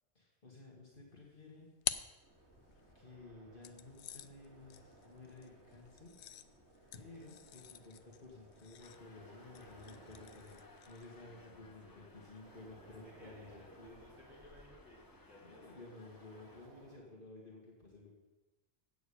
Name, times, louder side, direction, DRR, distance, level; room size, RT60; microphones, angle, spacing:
voice 1, 0.1-1.7 2.9-6.1 6.9-14.0 15.4-18.1, left 3 dB, 50° left, -2 dB, 1.8 m, -54 dB
sound 1, 1.1-2.9 3.6-11.2, left 10 dB, 80° left, 0.8 m, -47 dB
sound 2, 2.2-17.0, right 2 dB, 90° right, 2.0 m, -61 dB
sound 3, 8.8-16.7, left 3 dB, 25° left, 0.6 m, -63 dB
voice 2, 11.0-12.3 12.8-16.0, left 1 dB, ahead, -7 dB, 3.9 m, -60 dB
8.2 x 6.9 x 8.4 m, 1.1 s
omnidirectional pair, 1.1 m